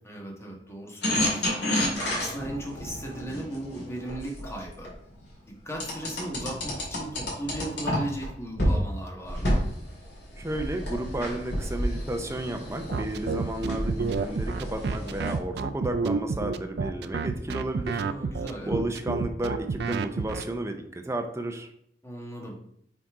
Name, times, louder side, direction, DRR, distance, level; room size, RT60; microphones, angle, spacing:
voice 1, 0.0-1.5 2.0-4.9 5.6-9.6 17.9-18.8 22.0-22.5, right 1 dB, 15° left, -1 dB, 1.4 m, -37 dB
sound 1, 1.0-4.9 5.8-8.3 8.6-8.8 9.2-15.4, equal, 65° left, 2.9 m, -30 dB
voice 2, 10.4-18.0 18.6-21.7, right 1 dB, 15° right, 5 dB, 0.6 m, -32 dB
sound 2, 12.9-20.4, right 4 dB, 65° right, 0.4 m, -29 dB
6.0 x 4.2 x 4.8 m, 0.70 s
head